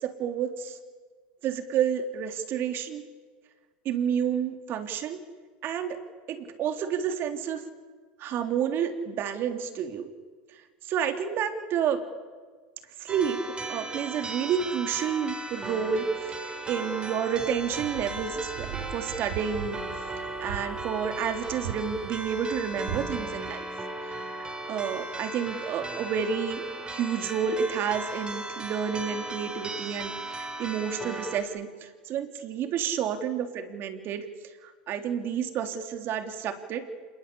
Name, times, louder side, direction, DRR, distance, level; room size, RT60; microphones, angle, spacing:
voice 1, 0.0-0.8 1.4-3.0 3.8-5.2 5.6-6.0 6.3-7.6 8.2-10.1 10.9-12.0 13.0-16.3 16.6-19.8 20.2-23.7 24.0-34.2 34.6-36.8, right 8 dB, 50° right, 7 dB, 3.4 m, -30 dB
sound 1, 13.1-31.4, right 2 dB, 20° right, 4.2 m, -37 dB
sound 2, 17.3-23.2, right 8 dB, 85° right, 7.4 m, -40 dB
27.5 x 21.5 x 8.6 m, 1.5 s
supercardioid pair, 105°, 5 cm